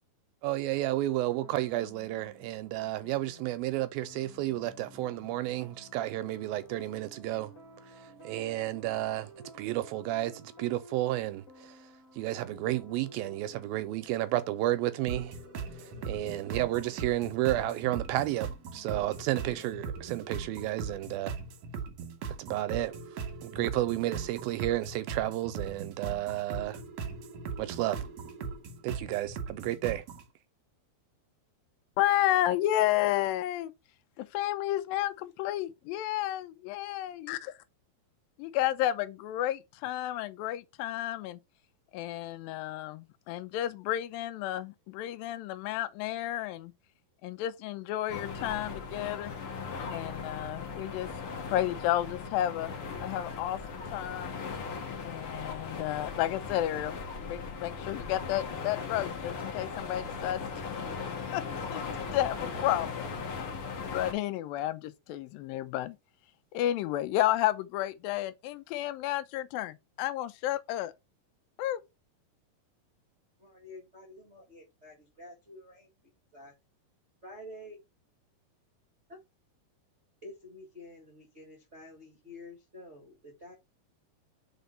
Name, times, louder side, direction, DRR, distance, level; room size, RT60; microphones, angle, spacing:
voice 1, 0.4-7.5 8.2-9.3 9.5-11.8 12.2-15.3 15.8-21.3 22.4-23.0 23.4-26.8 27.6-28.0 28.8-30.0, right 15 dB, 80° right, 2.2 m, -32 dB
sound 1, 1.2-19.7, left 1 dB, 25° left, 2.0 m, -54 dB
sound 2, 15.1-30.3, right 5 dB, 65° right, 1.8 m, -39 dB
voice 2, 32.0-33.7 34.2-37.5 38.4-41.4 41.9-46.7 47.2-49.3 49.9-52.7 53.0-54.3 55.0-60.4 61.3-61.4 61.7-63.1 63.8-66.0 66.5-70.9 71.6-71.8, left 13 dB, 80° left, 2.2 m, -31 dB
sound 3, 48.1-64.1, left 5 dB, 55° left, 1.5 m, -38 dB
voice 3, 73.4-75.9 76.3-76.5 77.2-77.8 80.2-83.5, left 1 dB, 50° right, 0.8 m, -49 dB
6.0 x 3.9 x 5.5 m
omnidirectional pair, 4.6 m